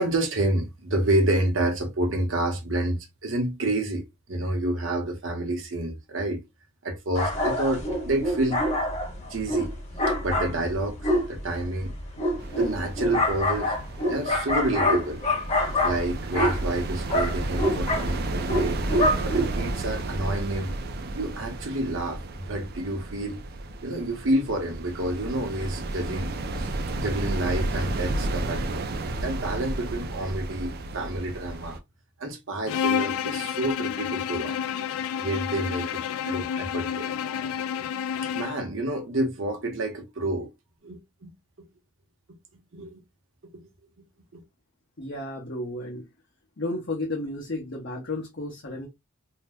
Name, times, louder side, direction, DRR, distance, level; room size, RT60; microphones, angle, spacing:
voice 1, 0.0-6.4 6.8-8.6 9.3-9.7 10.1-11.9 12.6-13.8 14.0-15.2 15.8-18.8 19.2-20.8 21.1-22.2 22.5-23.4 23.8-26.3 26.6-28.9 29.2-31.8 32.2-34.6 35.2-37.1 38.3-40.5 40.8-41.3 42.7-42.9 43.5-43.7 44.3-44.4, right 1 dB, 65° right, 0.8 m, -29 dB
sound 1, 7.1-19.7, left 1 dB, 30° left, 1.1 m, -26 dB
sound 2, 12.4-31.8, right 2 dB, 45° right, 0.4 m, -32 dB
Bowed string instrument, 32.7-38.7, left 8 dB, 85° left, 0.3 m, -29 dB
voice 2, 45.0-46.1 46.6-48.9, left 2 dB, 55° left, 0.8 m, -33 dB
2.7 x 2.1 x 3.4 m
head